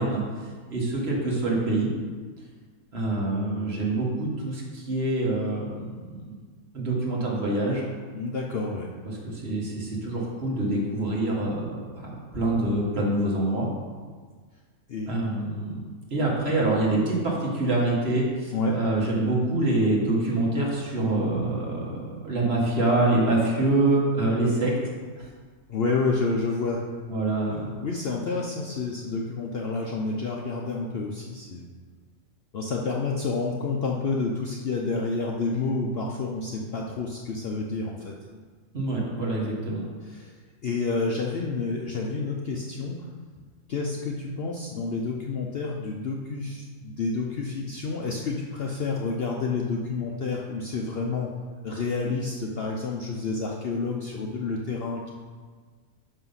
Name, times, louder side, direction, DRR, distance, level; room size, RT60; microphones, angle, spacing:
voice 1, 0.0-1.9 2.9-6.4 6.7-7.9 9.0-13.7 15.1-15.8 16.1-24.7 25.2-25.3 27.1-27.7 38.7-39.8, right 2 dB, 45° right, -3 dB, 1.7 m, -26 dB
voice 2, 8.1-8.9 14.9-15.1 18.5-18.7 25.7-26.8 27.4-31.7 32.5-38.1 40.1-40.3 40.6-43.1 43.7-51.3 51.6-55.1, left 3 dB, 55° left, -1 dB, 0.7 m, -29 dB
5.9 x 5.7 x 5.5 m, 1.5 s
omnidirectional pair, 1.5 m